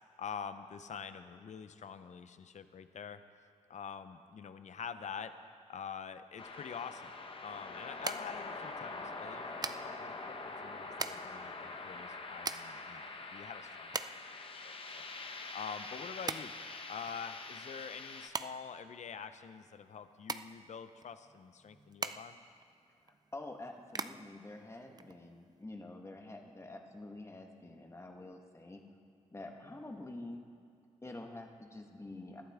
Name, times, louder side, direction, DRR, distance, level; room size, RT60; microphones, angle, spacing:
voice 1, 0.2-3.2 3.7-5.3 5.7-7.1 7.4-13.0 13.3-14.2 14.5-16.5 16.9-22.4, left 6 dB, 65° left, 10 dB, 0.7 m, -46 dB
sound 1, 6.4-18.3, left 3 dB, 45° left, 1.2 m, -45 dB
sound 2, 6.8-25.6, right 4 dB, 30° right, 0.4 m, -44 dB
voice 2, 23.3-28.8 29.3-30.4 31.0-32.4, left 2 dB, 20° left, 3 dB, 1.5 m, -47 dB
21.0 x 11.5 x 3.6 m, 2.3 s
cardioid pair, 75°, 13 cm